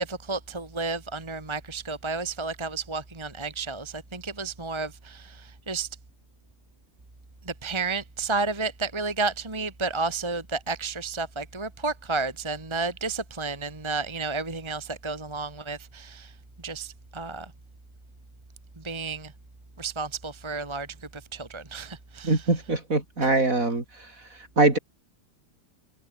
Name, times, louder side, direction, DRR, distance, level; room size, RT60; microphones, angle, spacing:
voice 1, 0.0-5.9 7.5-16.3 16.6-17.5 18.8-19.3 19.8-20.9 21.1-22.4, right 4 dB, 15° right, 1.9 m, -32 dB
voice 2, 22.2-23.8 24.6-24.8, right 2 dB, 50° right, 4.8 m, -22 dB
omnidirectional pair, 1.8 m